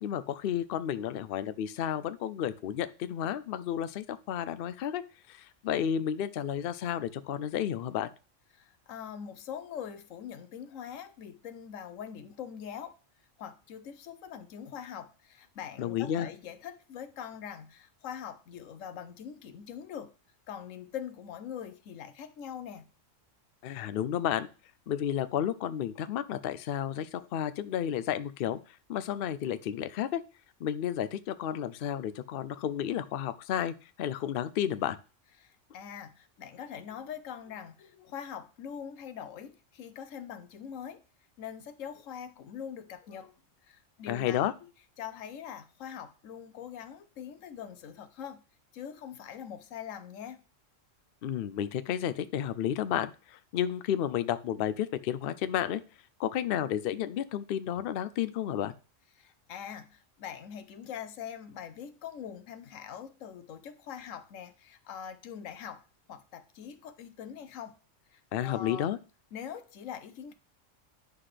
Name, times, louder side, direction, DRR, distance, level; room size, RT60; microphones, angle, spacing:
voice 1, 0.0-5.0 5.3-8.1 15.8-16.3 23.6-24.5 24.9-28.6 28.9-30.2 30.6-35.0 44.1-44.5 51.2-55.8 56.2-58.7 68.3-69.0, left 10 dB, 60° left, 0.6 m, -32 dB
voice 2, 8.5-13.0 13.4-20.1 20.5-22.9 35.4-41.0 41.4-43.3 43.7-44.5 45.0-48.4 48.7-50.4 59.2-65.8 66.1-67.7 68.1-68.9 69.3-70.3, left 8 dB, 85° left, 1.1 m, -43 dB
9.6 x 5.8 x 3.3 m
omnidirectional pair, 1.3 m